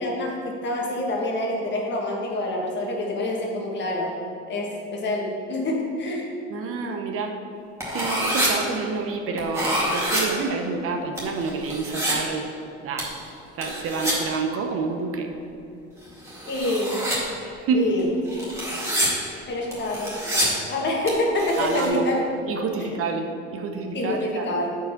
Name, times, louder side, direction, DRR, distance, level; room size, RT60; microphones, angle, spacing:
voice 1, 0.0-4.1 4.5-6.3 16.5-17.0 17.7-18.0 19.5-22.3 22.8-23.0 23.9-24.7, left 1 dB, 40° left, -1 dB, 1.5 m, -27 dB
voice 2, 6.5-7.3 7.9-12.4 12.8-13.1 13.6-15.3 17.6-17.9 21.6-22.1 22.5-24.6, right 4 dB, 50° right, 4 dB, 0.8 m, -28 dB
sound 1, 7.8-8.5 9.4-10.2 11.2-12.1 13.0-13.2 13.6-14.1 16.0-17.2 18.0-19.1 19.7-20.5 21.1-21.2 21.4-21.9, equal, 10° right, 2.0 m, -27 dB
8.1 x 4.8 x 5.8 m, 2.7 s
cardioid pair, 140°, 29 cm